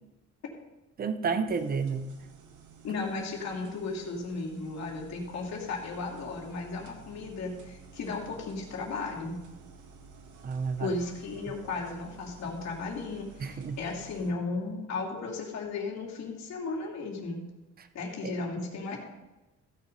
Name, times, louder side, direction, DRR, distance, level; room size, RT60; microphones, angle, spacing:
voice 1, 1.0-2.1 10.4-10.9 13.4-13.8 18.2-18.3, right 5 dB, 30° right, 10 dB, 0.7 m, -30 dB
sound 1, 1.5-14.3, right 5 dB, 75° right, 1.6 m, -52 dB
voice 2, 2.8-9.4 10.8-17.4 17.9-19.0, left 3 dB, 60° left, -1 dB, 2.7 m, -35 dB
15.0 x 7.0 x 5.3 m, 1.1 s
cardioid pair, 175°, 31 cm